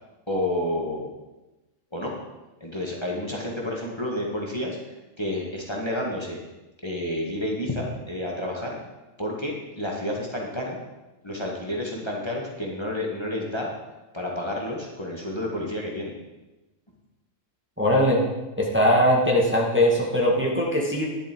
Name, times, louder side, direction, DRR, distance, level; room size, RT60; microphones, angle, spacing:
voice 1, 0.3-1.1 1.9-2.1 2.6-6.4 6.8-8.8 9.2-10.8 11.2-13.7 14.1-16.2, left 1 dB, 20° left, -2 dB, 1.7 m, -30 dB
voice 2, 17.8-18.2 18.6-21.1, equal, 10° right, -3 dB, 1.7 m, -20 dB
11.5 x 10.5 x 4.5 m, 1.1 s
omnidirectional pair, 1.3 m